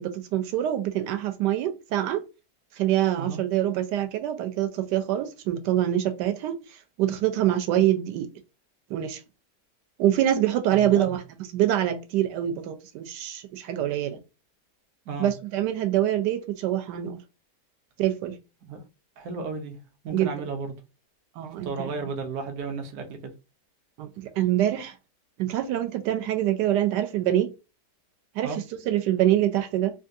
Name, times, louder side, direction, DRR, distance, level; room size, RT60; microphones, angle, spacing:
voice 1, 0.0-2.2 2.8-6.6 7.0-8.3 8.9-9.2 10.0-11.2 11.5-14.2 15.2-17.2 18.0-18.4 20.1-20.5 21.4-22.1 24.0-24.9 25.4-27.5 28.4-29.9, right 12 dB, 85° right, 1.2 m, -25 dB
voice 2, 10.7-11.2 15.1-15.3 18.7-18.8 19.2-19.8 20.0-20.7 21.6-23.3 28.4-28.6, right 4 dB, 65° right, 1.2 m, -33 dB
3.4 x 2.3 x 2.6 m
omnidirectional pair, 1.8 m